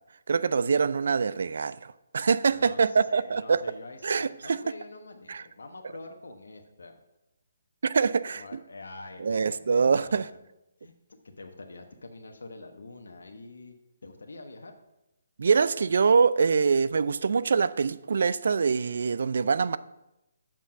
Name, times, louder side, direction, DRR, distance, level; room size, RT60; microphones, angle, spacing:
voice 1, 0.3-3.6 4.0-4.6 5.3-5.4 7.8-8.4 9.2-10.3 15.4-19.8, right 5 dB, 65° right, 16 dB, 0.4 m, -24 dB
voice 2, 2.5-7.0 8.3-10.4 10.8-10.9 11.4-13.7 14.0-14.8, left 2 dB, 75° left, 4 dB, 1.0 m, -45 dB
7.3 x 6.0 x 5.7 m, 0.92 s
figure-of-eight pair, 145°, 0 cm